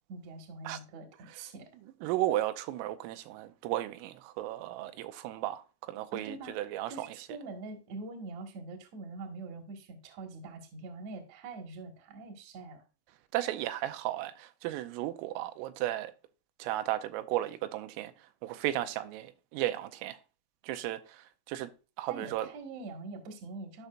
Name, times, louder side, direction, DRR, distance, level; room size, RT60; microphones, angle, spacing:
voice 1, 0.1-1.7 6.1-12.8 22.1-23.9, right 3 dB, 60° right, 1.9 m, -44 dB
voice 2, 2.0-7.1 13.3-16.1 16.6-20.2 20.6-21.7 22.0-22.5, right 14 dB, 90° right, 3.2 m, -34 dB
13.0 x 5.8 x 2.5 m
omnidirectional pair, 5.8 m